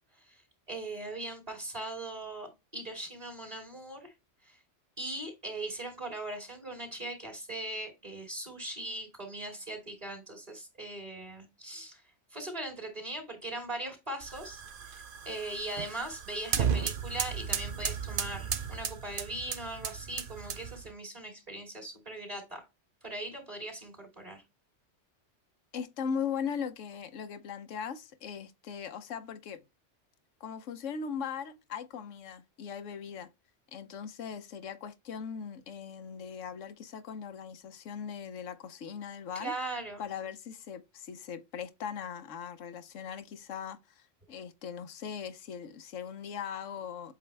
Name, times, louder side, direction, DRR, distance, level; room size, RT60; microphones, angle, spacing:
voice 1, 0.7-4.1 4.4-4.6 5.0-12.0 12.3-22.6 23.0-24.4 39.3-40.1, right 2 dB, 30° right, 2.8 m, -40 dB
sound 1, 14.2-20.9, right 7 dB, 50° right, 0.8 m, -35 dB
voice 2, 25.7-29.6 30.4-33.3 33.7-39.5 40.0-47.2, left 7 dB, 85° left, 1.2 m, -39 dB
8.0 x 3.6 x 3.3 m
omnidirectional pair, 1.3 m